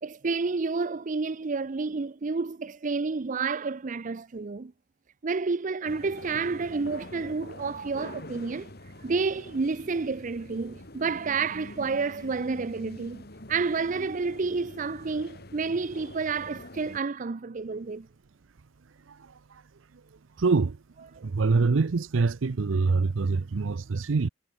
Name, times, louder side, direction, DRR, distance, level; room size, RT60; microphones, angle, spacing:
voice 1, 0.0-4.7 5.2-8.7 9.0-13.2 13.5-18.1, right 4 dB, 40° right, 0.5 m, -30 dB
sound 1, 5.9-17.0, left 1 dB, 55° left, 3.3 m, -45 dB
voice 2, 19.1-19.6 20.4-20.8 21.2-24.3, right 4 dB, 90° right, 0.6 m, -25 dB
head